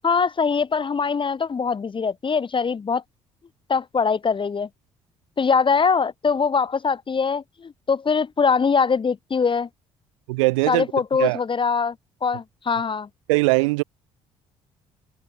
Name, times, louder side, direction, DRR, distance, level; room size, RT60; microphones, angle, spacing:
voice 1, 0.0-3.0 3.7-4.7 5.4-9.7 10.7-11.9 12.2-13.1, left 5 dB, 30° left, 1.1 m, -22 dB
voice 2, 10.3-10.9 11.2-11.4 13.3-13.8, right 24 dB, 80° right, 2.7 m, -20 dB
hypercardioid pair, 50°, 16 cm